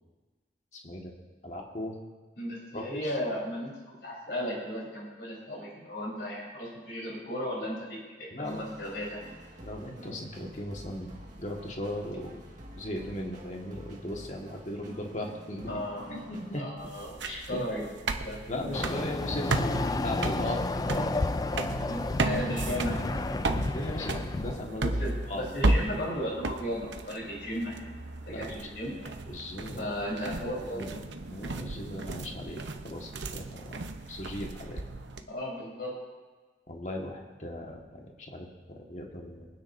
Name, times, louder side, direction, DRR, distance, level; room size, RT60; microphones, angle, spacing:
voice 1, 0.8-1.1 1.4-2.0 2.7-3.2 8.3-8.6 9.6-11.1 11.4-12.4 12.8-15.8 16.1-16.7 17.5-17.6 18.5-21.2 23.7-25.0 25.3-25.5 28.3-28.7 29.3-29.8 30.7-31.0 31.3-33.8 34.1-34.8 36.7-39.5, left 1 dB, 40° left, 0 dB, 1.7 m, -37 dB
voice 2, 2.4-9.3 15.7-16.3 16.6-17.8 18.2-18.4 21.9-23.1 25.0-27.9 28.3-28.9 29.8-31.1 35.3-35.9, equal, 65° left, -5 dB, 4.1 m, -35 dB
sound 1, 8.4-16.6, equal, 45° right, 1.9 m, -48 dB
sound 2, 16.8-35.2, right 2 dB, 90° right, 0.9 m, -34 dB
Chatter / Car passing by / Motorcycle, 18.7-24.6, left 2 dB, 20° left, 0.3 m, -31 dB
24.5 x 9.6 x 2.7 m, 1.3 s
head